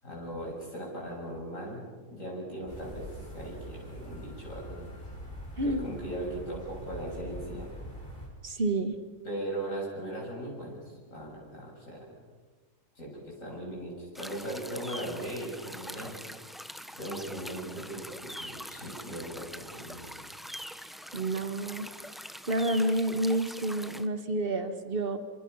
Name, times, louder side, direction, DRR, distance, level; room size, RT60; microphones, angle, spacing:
voice 1, 0.0-4.9 5.6-7.7 9.2-12.2 13.0-16.3 17.0-20.2, right 1 dB, 50° left, -3 dB, 7.6 m, -39 dB
sound 1, 2.7-8.3, equal, 30° left, 5.5 m, -43 dB
voice 2, 8.4-9.0 21.1-21.9 22.5-25.2, right 1 dB, 35° right, 8 dB, 1.8 m, -29 dB
sound 2, 14.1-24.1, equal, ahead, 0.5 m, -43 dB
27.5 x 26.0 x 5.7 m, 1.4 s
omnidirectional pair, 1.8 m